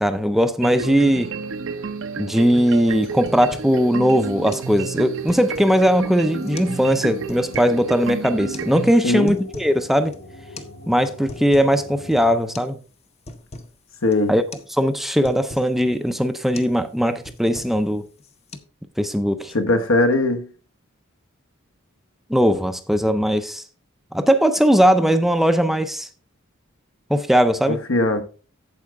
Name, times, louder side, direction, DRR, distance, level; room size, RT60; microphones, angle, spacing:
voice 1, 0.0-1.3 2.2-10.1 10.9-12.8 14.3-14.4 14.8-18.0 19.0-19.5 22.3-23.6 24.1-26.1 27.1-27.8, equal, ahead, 0.5 m, -19 dB
sound 1, 0.6-8.9, right 5 dB, 70° right, 0.7 m, -30 dB
sound 2, 2.6-2.7 3.0-3.8 4.1-4.2 4.5-4.7 5.1-5.8 6.4-6.8 7.1-7.8 8.5-8.7 9.1-9.8 10.1-10.2 10.6-10.7 11.1-11.8 12.1-12.2 12.6-12.8 13.0-13.7 14.1-14.3 14.5-14.7 15.0-15.7 16.1-16.3 16.6-16.8 17.1-17.9 18.2-18.6, left 2 dB, 30° left, 0.7 m, -40 dB
sound 3, 6.2-12.4, left 2 dB, 50° left, 2.0 m, -42 dB
voice 2, 9.0-9.4 14.0-14.3 19.5-20.5 27.7-28.2, left 2 dB, 70° left, 1.1 m, -20 dB
8.4 x 7.5 x 3.5 m
head